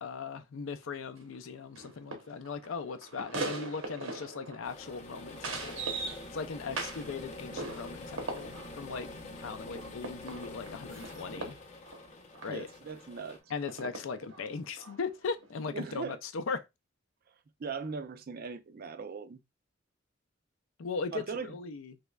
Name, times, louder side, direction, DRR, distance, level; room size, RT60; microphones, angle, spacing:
voice 1, 0.0-5.9 6.3-11.6 12.4-12.7 13.5-16.7 20.8-22.0, left 4 dB, 80° left, 0.5 m, -38 dB
sound 1, 0.8-0.9 1.1-1.4 1.8-7.2 7.5-12.6 13.7-15.0 15.4-15.5, right 3 dB, 85° right, 0.9 m, -41 dB
sound 2, 4.6-13.4, left 2 dB, 35° left, 0.6 m, -46 dB
voice 2, 12.5-13.4 15.7-16.2 17.6-19.4 21.1-21.5, right 5 dB, 50° right, 0.4 m, -39 dB
3.4 x 3.1 x 2.2 m
head